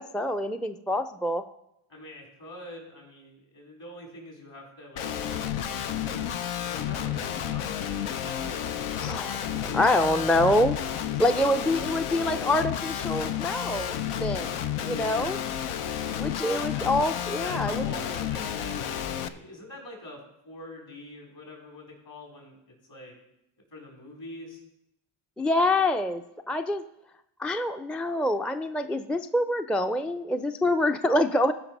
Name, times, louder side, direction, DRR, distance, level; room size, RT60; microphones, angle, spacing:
voice 1, 0.0-1.4 9.0-9.4 9.7-10.8 11.2-14.5 14.8-15.4 16.2-17.9 25.4-26.8 27.4-31.5, left 1 dB, ahead, 8 dB, 0.4 m, -26 dB
voice 2, 1.9-5.1 5.5-5.9 6.5-9.8 11.1-12.3 14.9-15.4 16.4-16.9 17.2-22.6 22.9-23.1 23.7-24.6, left 1 dB, 60° left, 0 dB, 4.5 m, -45 dB
Guitar, 5.0-19.3, left 9 dB, 85° left, 0.7 m, -31 dB
15.0 x 5.2 x 5.3 m, 0.84 s
supercardioid pair, 55°, 50 cm